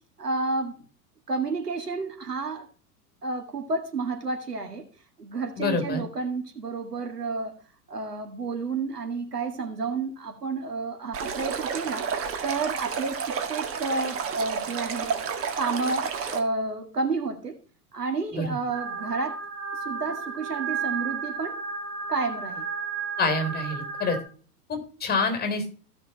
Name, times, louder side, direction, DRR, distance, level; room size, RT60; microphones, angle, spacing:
voice 1, 0.2-0.8 1.3-2.7 3.2-4.9 5.2-7.6 7.9-12.1 12.4-15.1 15.6-17.6 17.9-19.4 19.7-21.6 22.1-22.7, right 3 dB, 90° right, 5 dB, 2.0 m, -30 dB
voice 2, 5.6-6.0 18.3-18.6 23.2-24.2 24.7-25.7, left 3 dB, 20° left, 6 dB, 3.7 m, -27 dB
Stream, 11.1-16.4, right 6 dB, 30° right, 1.6 m, -31 dB
sound 1, 18.7-24.2, right 5 dB, 60° right, 2.4 m, -33 dB
16.0 x 6.0 x 3.0 m, 0.40 s
hypercardioid pair, 95°, 46 cm